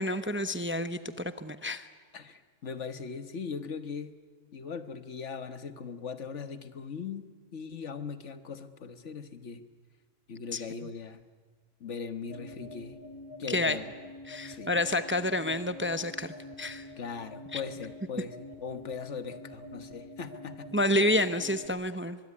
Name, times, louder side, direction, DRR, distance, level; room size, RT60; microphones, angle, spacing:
voice 1, 0.0-1.9 10.5-10.6 13.5-13.8 14.3-16.9 17.5-17.6 20.7-22.2, left 1 dB, 10° right, 11 dB, 0.7 m, -29 dB
voice 2, 2.1-4.1 4.5-9.6 10.3-11.2 11.8-13.0 13.4-13.9 14.5-14.7 17.0-20.7, left 5 dB, 70° left, 10 dB, 1.6 m, -39 dB
sound 1, 12.2-21.7, left 1 dB, 20° left, 2.6 m, -47 dB
23.5 x 22.5 x 9.8 m, 1.5 s
omnidirectional pair, 1.3 m